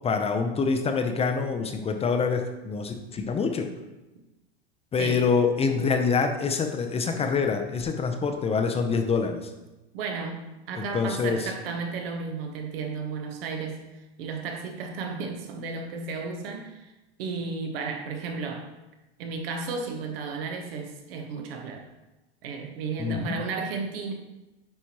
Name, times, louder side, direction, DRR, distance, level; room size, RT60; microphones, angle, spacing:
voice 1, 0.0-3.7 4.9-9.5 10.8-11.5 23.0-23.4, left 5 dB, 20° left, 5 dB, 0.6 m, -26 dB
voice 2, 5.0-5.3 9.9-13.8 14.2-16.9 17.2-18.7 19.2-21.9 22.4-24.1, right 4 dB, 65° right, 4 dB, 1.2 m, -33 dB
9.3 x 4.3 x 2.9 m, 1.0 s
hypercardioid pair, 105°, 31 cm